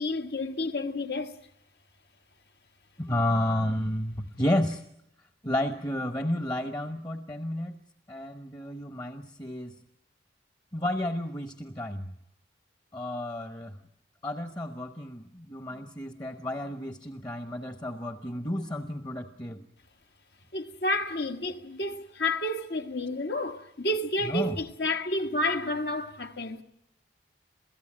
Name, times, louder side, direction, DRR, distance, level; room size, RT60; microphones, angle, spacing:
voice 1, 0.0-1.4 20.5-26.6, left 1 dB, 65° left, 1.6 m, -30 dB
voice 2, 3.0-4.8 5.4-7.8 8.1-9.7 10.7-12.1 12.9-13.8 14.2-19.6 24.3-24.6, left 1 dB, 25° left, 1.1 m, -31 dB
28.0 x 17.0 x 8.7 m
head